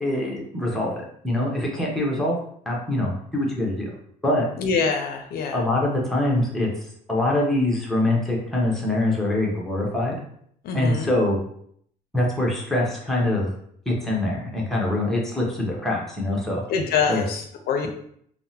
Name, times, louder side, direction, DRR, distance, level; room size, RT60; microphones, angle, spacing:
voice 1, 0.0-2.4 2.7-3.9 4.2-4.5 5.5-6.7 7.1-10.2 10.7-11.4 12.1-13.5 13.9-16.6 17.1-17.2, left 1 dB, ahead, -3 dB, 0.8 m, -24 dB
voice 2, 4.6-5.6 10.6-11.1 16.7-17.9, left 5 dB, 65° left, 4 dB, 0.4 m, -25 dB
3.5 x 2.0 x 2.7 m, 0.66 s
cardioid pair, 110°, 17 cm